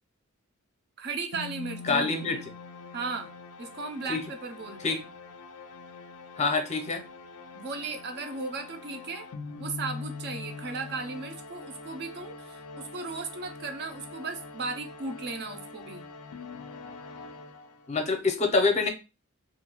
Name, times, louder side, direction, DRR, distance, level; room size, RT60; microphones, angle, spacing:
voice 1, 1.0-2.4 2.9-3.3 3.6-5.1 7.5-9.3 9.6-16.1, right 4 dB, 50° right, 7 dB, 0.5 m, -36 dB
sound 1, 1.3-18.1, left 4 dB, 80° left, 0.4 m, -44 dB
voice 2, 1.8-2.4 4.1-4.2 4.8-5.1 6.4-7.0 17.9-18.9, left 4 dB, 30° left, 5 dB, 0.5 m, -26 dB
2.4 x 2.2 x 3.0 m, 0.28 s
head